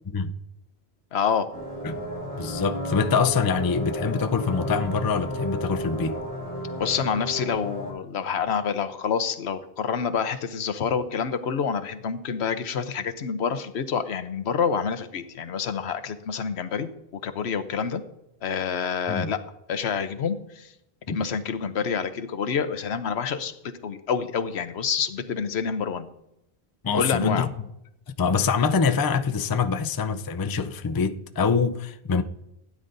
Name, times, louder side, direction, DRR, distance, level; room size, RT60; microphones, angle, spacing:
voice 1, 1.1-1.5 6.8-16.9 17.2-18.0 18.4-19.4 19.7-20.7 21.1-26.1 26.9-27.5, left 6 dB, 80° left, 1.0 m, -27 dB
sound 1, 1.5-7.9, equal, 30° right, 4.2 m, -33 dB
voice 2, 2.4-6.1 19.1-19.3 21.1-21.2 26.8-27.5 28.2-32.2, left 5 dB, 35° left, 0.4 m, -24 dB
16.5 x 9.7 x 2.6 m
omnidirectional pair, 1.1 m